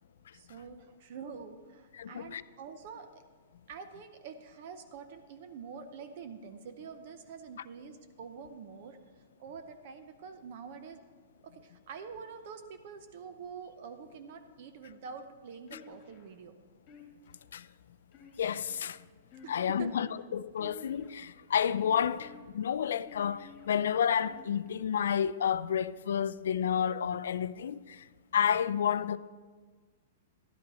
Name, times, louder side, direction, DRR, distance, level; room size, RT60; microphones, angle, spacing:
voice 1, 0.3-3.2 3.7-11.0 11.4-16.6 19.4-20.0, right 6 dB, 45° right, 0.6 m, -46 dB
voice 2, 1.9-2.4 17.5-17.7 18.4-19.0 19.5-28.0 28.3-29.2, left 8 dB, 80° left, 0.3 m, -30 dB
TUu tutu, 15.7-16.3 16.9-17.4 18.1-18.8 19.2-19.9 20.6-21.3 21.8-22.4 23.0-23.7 24.3-24.9, left 5 dB, 25° left, 1.6 m, -53 dB
12.0 x 10.5 x 4.1 m
hypercardioid pair, 170°, 0 cm